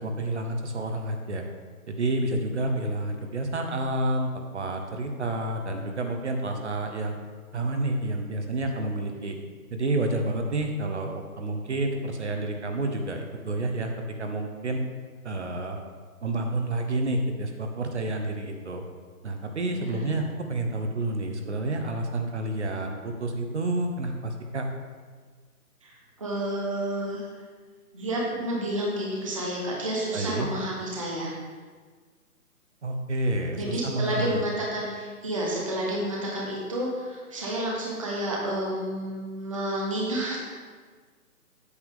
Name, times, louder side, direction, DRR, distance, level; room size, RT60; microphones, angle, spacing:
voice 1, 0.0-1.4 1.9-7.2 7.5-9.4 9.7-13.9 14.2-14.8 15.2-15.8 16.2-18.8 19.2-24.7 30.1-30.5 32.8-34.4, right 2 dB, 50° right, 4 dB, 0.9 m, -29 dB
voice 2, 19.7-20.0 25.8-27.3 27.9-31.3 33.6-40.4, right 1 dB, 20° right, -4 dB, 0.7 m, -30 dB
8.1 x 7.1 x 3.6 m, 1.5 s
hypercardioid pair, 170°, 45 cm